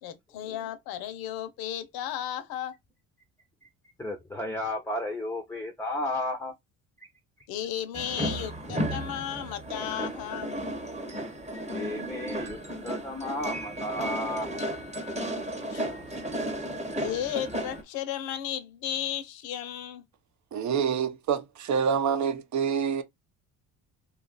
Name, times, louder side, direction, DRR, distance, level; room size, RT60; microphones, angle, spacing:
voice 1, 0.0-2.7 7.5-10.6 15.6-15.8 16.9-20.0, left 11 dB, 80° left, 0.7 m, -34 dB
voice 2, 4.0-6.5 11.7-14.5 16.0-16.1, left 1 dB, 5° left, 0.6 m, -33 dB
sound 1, 7.9-17.8, right 1 dB, 20° right, 1.0 m, -34 dB
voice 3, 20.5-23.0, right 7 dB, 50° right, 0.7 m, -27 dB
2.8 x 2.4 x 3.9 m
cardioid pair, 95°, 36 cm